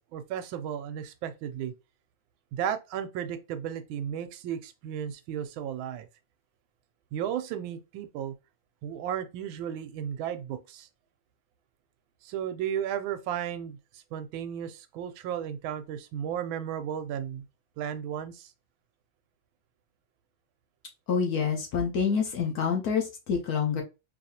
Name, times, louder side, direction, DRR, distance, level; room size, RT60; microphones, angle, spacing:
voice 1, 0.0-1.7 2.5-6.1 7.1-8.3 8.8-10.9 12.2-17.5 17.8-18.5, right 9 dB, 90° right, 1.4 m, -34 dB
voice 2, 21.1-23.8, left 6 dB, 60° left, 1.2 m, -27 dB
4.0 x 2.8 x 2.8 m
omnidirectional pair, 2.1 m